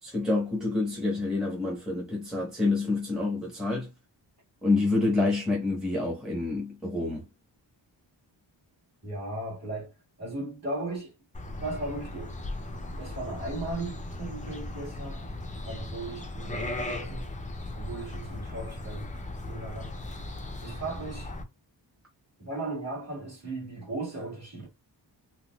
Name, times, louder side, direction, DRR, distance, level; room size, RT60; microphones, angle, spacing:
voice 1, 0.0-3.9 4.6-7.2, left 3 dB, ahead, 0.9 m, -27 dB
voice 2, 9.0-11.1 11.6-12.3 12.9-15.3 15.5-17.3 17.7-19.1 19.5-20.1 20.6-21.3 22.4-24.7, right 2 dB, 35° right, 1.7 m, -37 dB
sound 1, 11.3-21.4, left 1 dB, 20° left, 0.4 m, -37 dB
3.8 x 2.2 x 2.2 m
wide cardioid pair, 160°, 45 cm